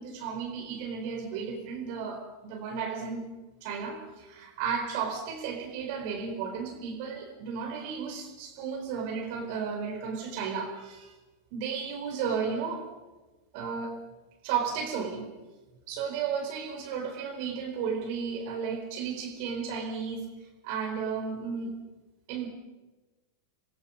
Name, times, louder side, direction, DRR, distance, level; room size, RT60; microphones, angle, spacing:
voice 1, 0.0-3.3 3.6-11.1 11.5-12.9 13.5-14.0 14.4-15.3 15.9-20.3 20.6-21.7 22.3-22.5, right 6 dB, 45° right, 3 dB, 4.3 m, -33 dB
28.0 x 21.0 x 5.2 m, 1.2 s
figure-of-eight pair, 90°, 0 cm